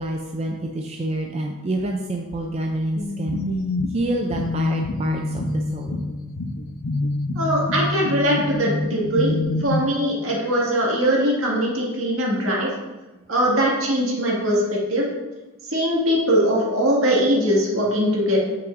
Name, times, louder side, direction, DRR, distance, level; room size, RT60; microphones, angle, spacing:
voice 1, 0.0-3.4 3.9-6.0, right 1 dB, 30° right, 2 dB, 0.4 m, -27 dB
sound 1, 3.0-9.8, left 2 dB, 75° left, 0.7 m, -26 dB
voice 2, 7.4-9.3 9.6-12.7 13.3-15.1 15.7-18.4, equal, 65° right, -4 dB, 2.0 m, -21 dB
8.8 x 5.9 x 2.5 m, 1.1 s
head